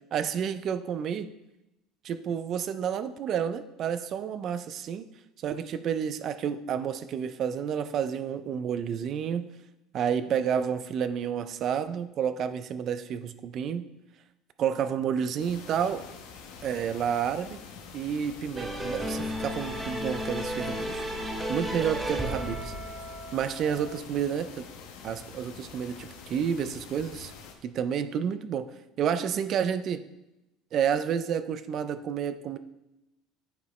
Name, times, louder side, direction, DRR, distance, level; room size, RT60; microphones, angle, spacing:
voice 1, 0.1-1.3 2.0-5.1 5.4-9.5 9.9-13.9 14.6-16.1 16.6-17.6 17.9-21.1 21.5-22.7 23.3-24.7 25.0-27.3 27.6-30.0 30.7-32.6, right 8 dB, 40° right, 12 dB, 0.3 m, -30 dB
sound 1, 15.4-27.5, left 6 dB, 85° left, 0.9 m, -47 dB
sound 2, 18.5-24.0, equal, 10° right, 0.7 m, -34 dB
8.3 x 4.9 x 3.1 m, 0.92 s
cardioid pair, 160°, 0 cm